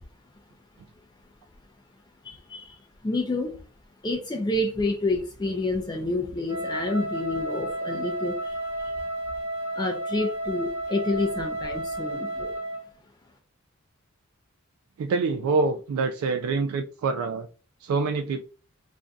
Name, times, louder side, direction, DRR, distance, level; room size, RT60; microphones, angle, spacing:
voice 1, 2.2-3.6 4.0-8.9 9.8-12.6, left 2 dB, 20° left, 3 dB, 0.3 m, -29 dB
Wind instrument woodwind instrument, 6.5-12.9, right 1 dB, 10° right, 0.8 m, -32 dB
voice 2, 15.0-17.5 17.8-18.4, right 4 dB, 85° right, 7 dB, 0.3 m, -26 dB
3.6 x 2.6 x 2.2 m, 0.37 s
head